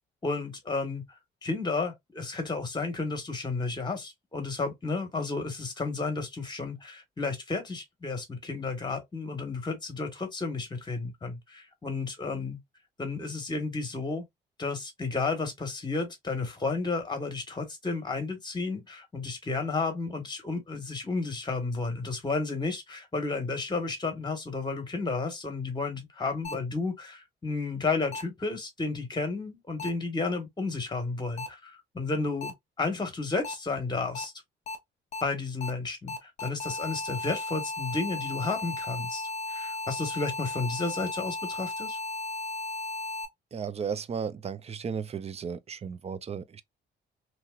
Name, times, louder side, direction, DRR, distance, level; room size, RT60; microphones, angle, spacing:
voice 1, 0.2-1.0 1.4-12.6 13.0-14.2 14.6-34.3 35.2-42.0, left 3 dB, 20° left, 1.4 m, -32 dB
sound 1, 26.4-26.5 28.1-28.2 29.8-29.9 31.4-31.5 32.4-32.5 33.4-33.5 34.1-34.2 34.7-34.8 35.1-35.2 35.6-35.7 36.1-43.3, left 2 dB, 35° left, 1.2 m, -35 dB
voice 2, 43.5-46.6, right 6 dB, 30° right, 0.5 m, -34 dB
3.0 x 2.8 x 2.4 m
cardioid pair, 90°, 20 cm